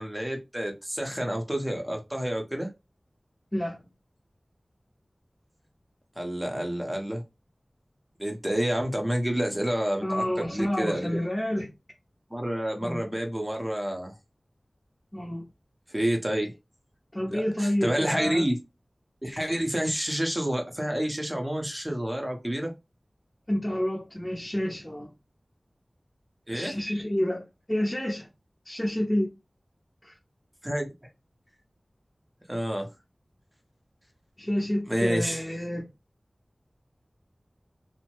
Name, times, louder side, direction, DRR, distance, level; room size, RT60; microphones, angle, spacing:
voice 1, 0.0-2.7 6.2-7.2 8.2-11.2 12.3-14.2 15.9-16.5 17.3-18.6 19.2-22.7 26.5-26.8 30.6-30.9 32.5-32.9 34.9-35.4, equal, 15° right, 0.8 m, -29 dB
voice 2, 3.5-3.8 10.0-11.7 12.8-13.1 15.1-15.5 17.1-18.5 23.5-25.1 26.5-27.4 27.7-28.3 28.6-29.3 30.0-30.1 34.4-35.9, left 1 dB, 20° left, 0.8 m, -29 dB
2.8 x 2.1 x 2.9 m
wide cardioid pair, 45°, 0 cm